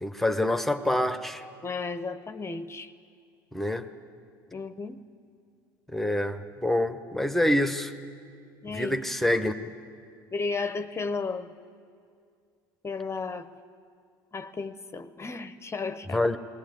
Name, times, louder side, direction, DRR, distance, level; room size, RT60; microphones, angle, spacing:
voice 1, 0.0-1.4 3.5-3.8 5.9-7.9 8.7-9.7 16.1-16.4, left 1 dB, ahead, 9 dB, 1.2 m, -26 dB
voice 2, 1.6-2.9 4.5-5.0 8.6-9.0 10.3-11.5 12.8-13.5 14.3-16.2, left 4 dB, 25° left, 11 dB, 0.8 m, -33 dB
20.0 x 19.5 x 9.5 m, 2.3 s
hypercardioid pair, 65°, 11 cm